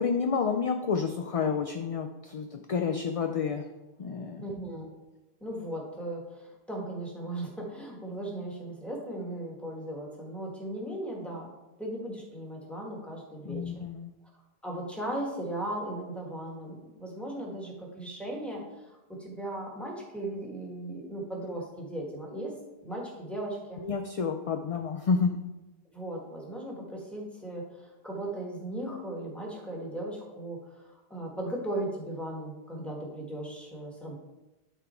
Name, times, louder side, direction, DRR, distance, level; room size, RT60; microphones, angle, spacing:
voice 1, 0.0-3.7 4.0-4.4 13.5-14.1 23.8-25.4, left 5 dB, 50° left, 5 dB, 0.4 m, -29 dB
voice 2, 4.4-4.9 5.4-13.7 14.6-23.8 25.9-34.2, right 1 dB, ahead, -2 dB, 1.8 m, -37 dB
12.0 x 4.1 x 4.5 m, 1.0 s
omnidirectional pair, 1.0 m